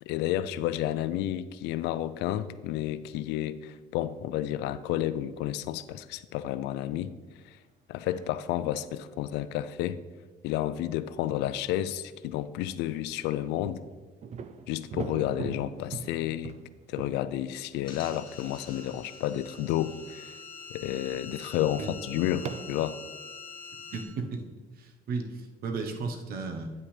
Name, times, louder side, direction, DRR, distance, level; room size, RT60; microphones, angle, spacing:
voice 1, 0.0-7.1 7.4-7.6 7.9-10.0 10.4-13.8 14.7-16.6 16.9-20.3 20.7-23.0, left 12 dB, 90° left, 14 dB, 0.4 m, -31 dB
sound 1, 8.0-8.4 13.6-18.5 19.2-19.3 20.0-20.4 21.1-21.3 22.4-22.9, right 6 dB, 40° right, 0.4 m, -41 dB
sound 2, 17.8-24.0, left 4 dB, 25° left, 1.8 m, -45 dB
voice 2, 23.9-24.4 24.8-26.7, right 4 dB, 65° right, 5 dB, 1.0 m, -34 dB
9.3 x 6.0 x 3.3 m, 1.3 s
cardioid pair, 110°, 17 cm